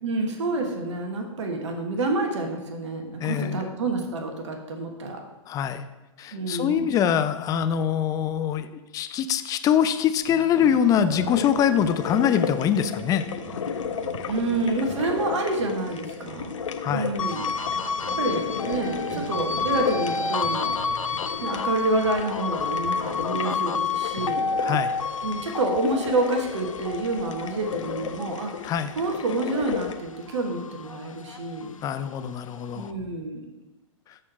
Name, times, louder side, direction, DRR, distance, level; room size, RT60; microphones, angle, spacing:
voice 1, 0.0-5.2 6.3-7.0 14.3-16.5 16.9-17.5 17.8-17.9 18.2-20.8 21.4-24.5 25.2-28.5 28.9-31.8 32.7-33.5, right 2 dB, 65° right, 3 dB, 1.5 m, -28 dB
voice 2, 3.2-3.6 5.5-5.9 6.2-8.7 8.9-13.2 16.8-17.1 24.6-24.9 28.6-28.9 31.8-32.9, left 9 dB, 20° left, 11 dB, 0.5 m, -23 dB
sound 1, 10.2-21.3, right 3 dB, 30° right, 2.5 m, -41 dB
sound 2, 11.3-30.0, left 7 dB, 70° left, 0.9 m, -34 dB
sound 3, 17.2-29.8 30.2-31.9, left 4 dB, 90° left, 0.4 m, -30 dB
13.0 x 4.4 x 4.3 m, 1.0 s
figure-of-eight pair, 110°, 17 cm